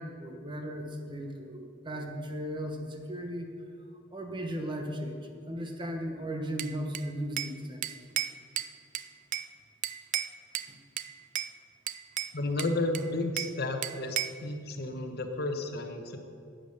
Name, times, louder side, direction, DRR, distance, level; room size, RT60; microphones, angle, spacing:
voice 1, 0.0-3.5 4.1-8.0, equal, 25° right, 3 dB, 1.0 m, -36 dB
Bell / Glass, 6.6-7.6 7.8-9.5 9.8-10.7 11.0-11.5 11.9-13.6 13.8-14.4, right 12 dB, 40° right, 0.3 m, -34 dB
voice 2, 12.3-16.2, left 2 dB, 50° left, 5 dB, 1.0 m, -32 dB
11.0 x 8.8 x 6.6 m, 2.4 s
head